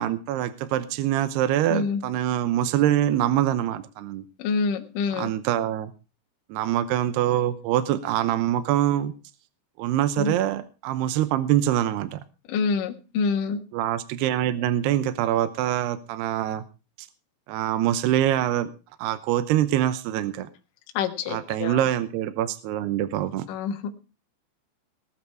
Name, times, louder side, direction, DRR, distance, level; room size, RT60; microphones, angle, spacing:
voice 1, 0.0-4.2 5.1-5.9 6.5-9.1 9.8-12.2 13.7-16.6 17.0-17.1 17.5-18.7 19.0-20.5 21.3-23.5, right 12 dB, 80° right, 13 dB, 2.8 m, -24 dB
voice 2, 1.7-2.0 4.4-5.3 10.2-10.3 12.5-13.6 20.9-21.8 23.5-23.9, left 5 dB, 60° left, 4 dB, 2.7 m, -26 dB
19.5 x 9.0 x 4.6 m, 0.33 s
omnidirectional pair, 5.1 m